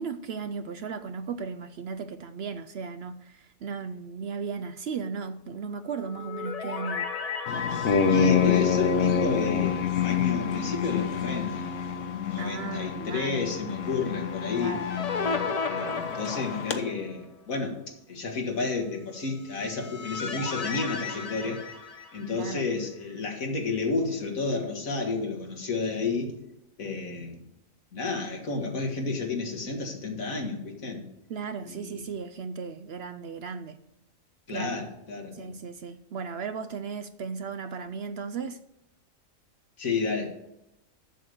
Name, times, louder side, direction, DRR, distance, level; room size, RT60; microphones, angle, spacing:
voice 1, 0.0-7.1 12.4-13.4 14.6-14.9 22.3-22.7 31.3-33.8 34.5-34.8 35.3-38.6, right 5 dB, 65° right, 0.7 m, -36 dB
sound 1, 5.9-10.2 10.5-10.6 14.1-17.2 19.3-22.7, left 5 dB, 40° left, 0.6 m, -35 dB
sound 2, 7.5-16.8, left 7 dB, 70° left, 1.1 m, -27 dB
voice 2, 8.1-11.7 12.1-14.8 15.7-17.8 18.1-21.6 22.1-26.3 26.8-27.4 27.9-31.1 31.6-32.0 34.5-35.5 39.8-40.3, left 4 dB, 90° left, 2.1 m, -31 dB
7.7 x 7.0 x 6.6 m
omnidirectional pair, 1.4 m